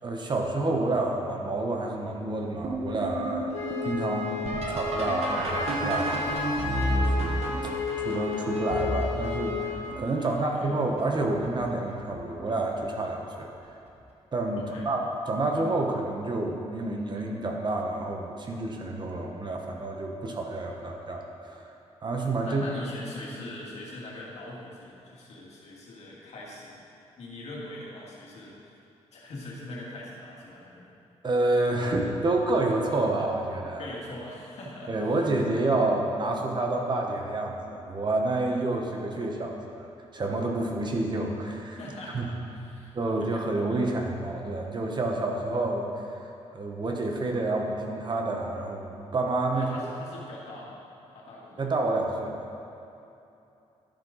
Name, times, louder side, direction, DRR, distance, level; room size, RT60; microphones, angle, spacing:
voice 1, 0.0-3.5 3.8-6.4 6.9-7.7 8.0-13.5 14.3-15.0 15.3-21.7 22.0-22.6 31.2-33.8 34.9-39.9 40.1-41.8 42.1-42.3 42.9-45.9 46.5-49.7 51.6-52.4, right 2 dB, 40° right, 1 dB, 1.1 m, -29 dB
sound 1, 2.6-10.3 11.0-11.5 12.0-12.6 13.9-14.0 14.7-15.0 17.2-17.3 19.6-19.7, right 1 dB, 60° right, 1.4 m, -32 dB
Wind instrument woodwind instrument, 3.5-9.8, left 4 dB, 85° left, 2.0 m, -32 dB
voice 2, 10.2-10.7 14.6-14.9 22.4-26.8 27.2-28.5 29.1-30.9 33.8-35.1 41.8-43.4 49.5-50.8 51.1-51.6, left 1 dB, 65° left, -4 dB, 2.1 m, -42 dB
12.0 x 5.8 x 4.0 m, 2.8 s
cardioid pair, 95°, 12 cm